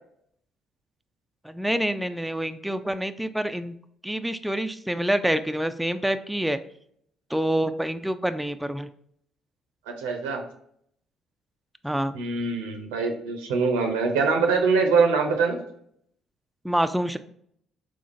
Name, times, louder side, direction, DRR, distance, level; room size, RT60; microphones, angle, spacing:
voice 1, 1.4-3.8 4.0-6.6 7.3-8.9 11.8-12.2 16.6-17.2, right 1 dB, 5° right, 9 dB, 0.3 m, -27 dB
voice 2, 10.0-10.4 12.1-15.6, right 4 dB, 90° right, 3 dB, 0.6 m, -23 dB
3.7 x 3.1 x 2.5 m, 0.68 s
hypercardioid pair, 55°, 0 cm